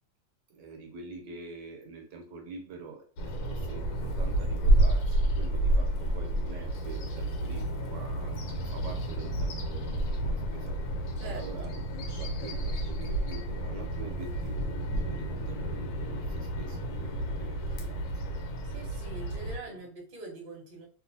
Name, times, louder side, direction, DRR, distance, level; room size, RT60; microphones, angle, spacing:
voice 1, 0.5-18.4 19.7-19.8, right 4 dB, 75° right, 1.2 m, -45 dB
Bird vocalization bird call bird song, 3.2-19.6, right 1 dB, 90° left, 1.4 m, -30 dB
voice 2, 11.2-11.8 18.6-20.9, right 2 dB, 40° right, 0.8 m, -44 dB
2.9 x 2.5 x 2.6 m
omnidirectional pair, 2.0 m